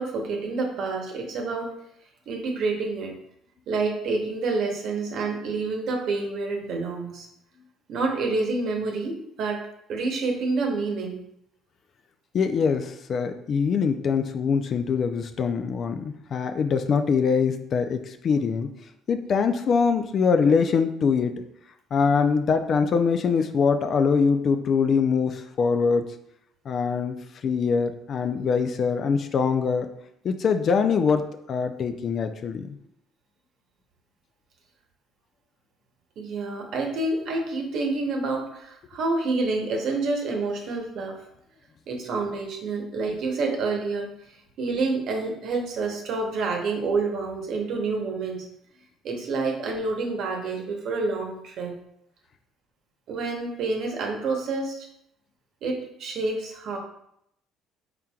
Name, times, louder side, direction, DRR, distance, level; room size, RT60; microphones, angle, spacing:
voice 1, 0.0-1.7 2.3-3.1 3.7-7.3 7.9-9.6 9.9-11.2 36.2-41.2 41.9-48.4 49.0-51.8 53.1-54.9 55.6-56.8, right 3 dB, 65° right, 2 dB, 0.9 m, -28 dB
voice 2, 12.3-18.7 19.1-21.4 21.9-26.1 26.7-27.2 27.4-29.9 30.2-32.7, left 5 dB, 50° left, 8 dB, 0.4 m, -23 dB
4.3 x 3.7 x 2.3 m, 0.75 s
supercardioid pair, 85°, 0 cm